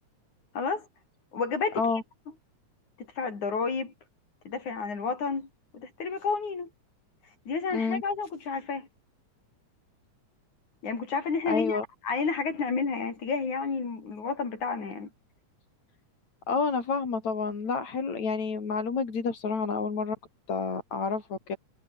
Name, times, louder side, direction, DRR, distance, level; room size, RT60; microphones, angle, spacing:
voice 1, 0.5-0.9 1.3-1.8 3.0-3.9 4.4-5.5 5.7-6.7 7.5-8.9 10.8-15.1, left 4 dB, 90° left, 6.6 m, -31 dB
voice 2, 11.5-11.8 16.5-20.2 20.5-21.6, left 4 dB, 70° left, 5.6 m, -29 dB
omnidirectional pair, 3.3 m